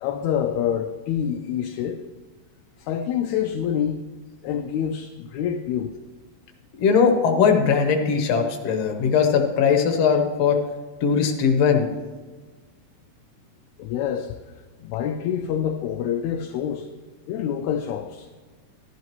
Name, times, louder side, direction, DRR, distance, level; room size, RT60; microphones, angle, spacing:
voice 1, 0.0-2.0 2.8-4.1 4.4-5.9 13.8-14.4 14.8-16.9 17.2-18.3, left 9 dB, 80° left, 5 dB, 1.8 m, -26 dB
voice 2, 6.8-10.6 11.0-11.9, left 6 dB, 60° left, 3 dB, 2.1 m, -19 dB
13.5 x 11.5 x 3.0 m, 1.4 s
omnidirectional pair, 3.5 m